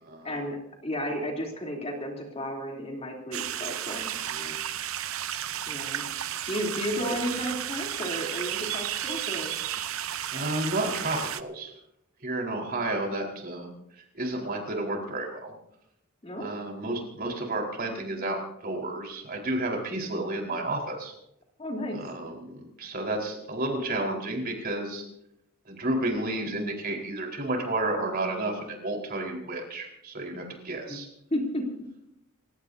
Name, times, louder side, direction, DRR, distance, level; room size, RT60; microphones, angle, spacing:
voice 1, 0.2-4.2 5.7-6.0 6.4-9.6 16.2-16.5 21.6-22.0 30.3-30.5 30.9-31.0 31.3-31.7, equal, 30° left, 0 dB, 3.4 m, -33 dB
sound 1, 3.3-11.4, right 10 dB, 75° right, 0.8 m, -33 dB
voice 2, 10.3-11.7 12.2-13.7 14.1-15.5 16.4-21.1 22.0-25.0 25.7-31.1, right 2 dB, 45° right, 1 dB, 4.5 m, -31 dB
29.5 x 16.5 x 2.8 m, 0.79 s
head